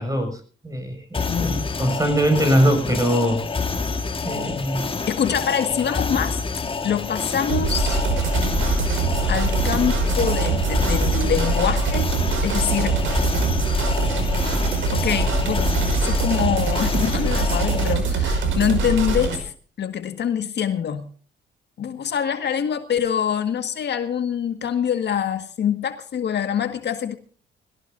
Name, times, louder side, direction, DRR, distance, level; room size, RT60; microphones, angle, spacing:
voice 1, 0.0-3.4 4.2-4.9, equal, 15° right, 6.7 m, -22 dB
sound 1, 1.1-17.9, left 4 dB, 25° left, 1.7 m, -28 dB
voice 2, 1.3-1.8 5.1-6.4 6.8-8.0 9.3-12.1 12.4-13.0 14.9-15.7 16.0-19.5 19.8-21.1 21.8-27.2, left 8 dB, 60° left, 1.8 m, -25 dB
sound 2, 7.5-19.4, right 3 dB, 80° right, 5.5 m, -23 dB
21.5 x 17.0 x 2.6 m
cardioid pair, 90°, 20 cm